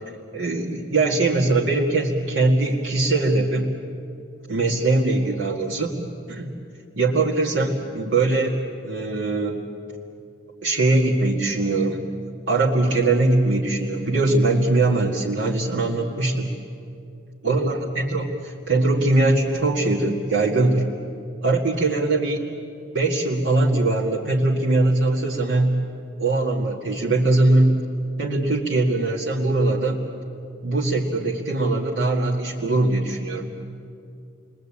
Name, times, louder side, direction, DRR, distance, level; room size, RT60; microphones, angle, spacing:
voice 1, 0.3-3.8 4.5-6.0 6.3-6.5 7.0-9.6 10.6-12.0 12.5-16.5 17.4-20.9 21.4-22.5 22.9-25.8 26.2-27.8 28.2-30.1 30.6-33.5, right 2 dB, 85° right, -4 dB, 2.2 m, -21 dB
29.5 x 21.5 x 8.8 m, 2.5 s
head